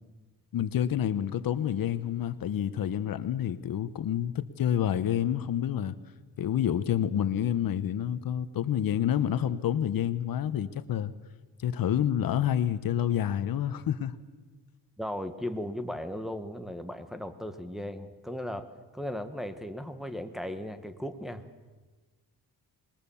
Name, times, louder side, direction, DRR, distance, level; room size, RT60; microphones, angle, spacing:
voice 1, 0.5-6.0 6.4-11.1 11.6-14.1, left 10 dB, 65° left, 13 dB, 1.0 m, -28 dB
voice 2, 15.0-18.7 18.9-21.4, left 1 dB, ahead, 6 dB, 1.3 m, -36 dB
26.5 x 21.5 x 7.1 m, 1.3 s
cardioid pair, 135°, 38 cm